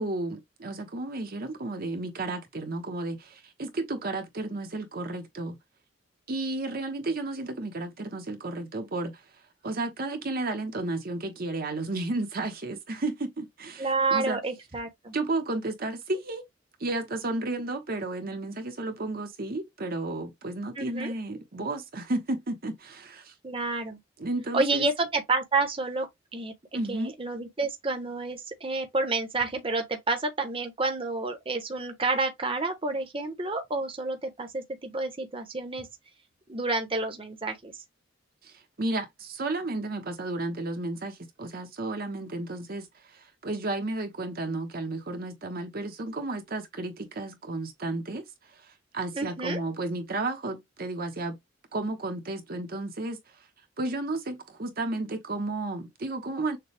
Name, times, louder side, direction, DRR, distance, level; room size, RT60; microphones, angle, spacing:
voice 1, 0.0-5.6 6.3-9.2 9.6-14.4 15.1-16.4 16.8-23.3 24.2-24.9 26.7-27.1 38.4-51.4 51.7-53.5 53.8-56.6, right 2 dB, 50° right, 1.0 m, -33 dB
voice 2, 13.8-15.1 20.8-21.1 23.4-24.0 24.5-35.9 36.5-37.8 49.1-49.6, right 3 dB, 30° right, 1.0 m, -29 dB
6.8 x 2.3 x 3.3 m
head